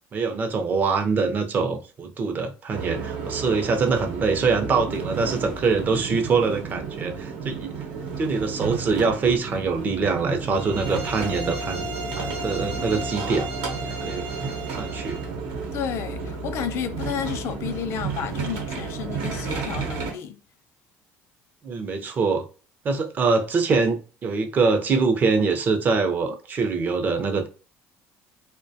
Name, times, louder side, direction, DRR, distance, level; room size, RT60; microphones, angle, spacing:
voice 1, 0.1-7.7 8.2-13.5 13.9-14.3 14.8-15.2 21.6-22.4 22.8-27.5, right 4 dB, 35° right, 0.5 m, -24 dB
sound 1, 2.7-20.1, right 5 dB, 90° right, 0.8 m, -32 dB
sound 2, 10.5-15.3, right 1 dB, 55° right, 0.9 m, -36 dB
voice 2, 15.7-20.4, left 8 dB, 60° left, 0.3 m, -31 dB
2.3 x 2.1 x 2.6 m
cardioid pair, 120°, 5 cm